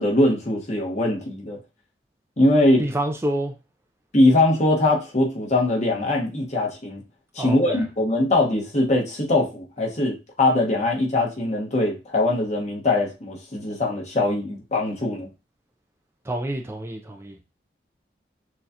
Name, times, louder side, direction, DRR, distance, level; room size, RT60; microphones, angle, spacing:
voice 1, 0.0-1.6 2.4-2.8 4.1-7.0 7.3-15.3, left 2 dB, 40° left, 1.2 m, -21 dB
voice 2, 2.8-3.5 7.4-7.9 16.3-17.4, right 1 dB, 15° right, 0.4 m, -28 dB
6.2 x 2.4 x 2.7 m
head